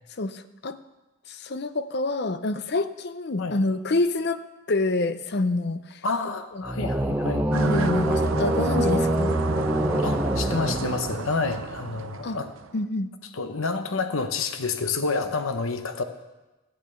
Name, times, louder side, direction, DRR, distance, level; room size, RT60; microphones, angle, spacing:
voice 1, 0.2-0.8 1.3-4.4 4.7-6.0 6.5-6.9 7.5-9.4 12.2-12.4 12.7-13.1, left 2 dB, 50° left, 12 dB, 0.6 m, -27 dB
voice 2, 6.0-7.5 10.0-12.5 13.3-16.0, left 4 dB, 75° left, 8 dB, 0.9 m, -29 dB
sound 1, 6.6-11.4, right 1 dB, 10° right, 0.7 m, -25 dB
sound 2, 7.5-12.8, right 4 dB, 70° right, 0.6 m, -32 dB
14.0 x 8.8 x 6.9 m, 1.1 s
head